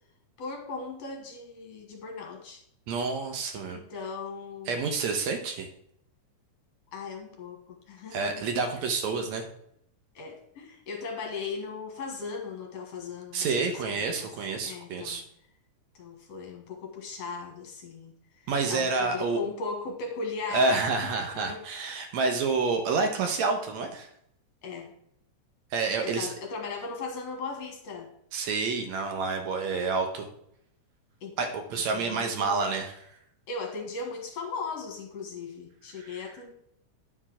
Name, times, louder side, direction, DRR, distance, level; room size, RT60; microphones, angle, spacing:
voice 1, 0.4-2.6 3.7-4.8 6.9-8.4 10.2-13.7 14.0-14.3 14.6-15.2 16.0-20.8 21.2-21.6 24.6-24.9 26.0-28.1 31.2-31.5 31.7-32.7 33.5-36.5, left 4 dB, 60° left, 2 dB, 2.3 m, -38 dB
voice 2, 2.9-3.8 4.7-5.7 8.1-9.4 13.3-15.2 18.5-19.4 20.5-24.1 25.7-26.3 28.3-30.3 31.4-33.0 36.0-36.2, right 4 dB, 70° right, 5 dB, 2.1 m, -28 dB
9.9 x 4.6 x 6.0 m, 0.73 s
omnidirectional pair, 3.6 m